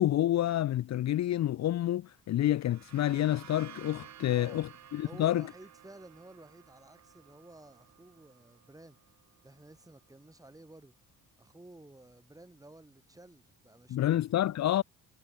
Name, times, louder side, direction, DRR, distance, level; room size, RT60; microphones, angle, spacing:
voice 1, 0.0-5.5 13.9-14.8, left 13 dB, 55° left, 0.9 m, -28 dB
sound 1, 2.3-9.9, right 10 dB, 55° right, 2.9 m, -55 dB
voice 2, 4.2-4.6 5.0-9.0 9.4-11.0 11.4-14.6, right 2 dB, 10° right, 5.8 m, -53 dB
cardioid pair, 90°, 32 cm